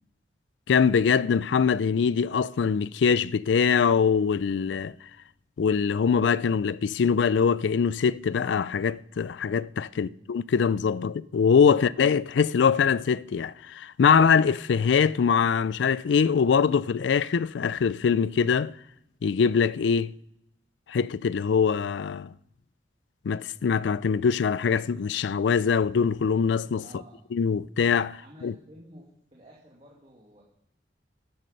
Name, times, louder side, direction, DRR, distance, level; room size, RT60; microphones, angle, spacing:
voice 1, 0.7-4.9 5.6-18.7 19.2-20.1 20.9-22.3 23.2-26.8 27.3-28.5, left 6 dB, 80° left, 0.4 m, -23 dB
voice 2, 26.8-27.2 28.1-29.1 29.3-30.4, equal, 35° right, 2.2 m, -50 dB
12.0 x 9.4 x 5.3 m
head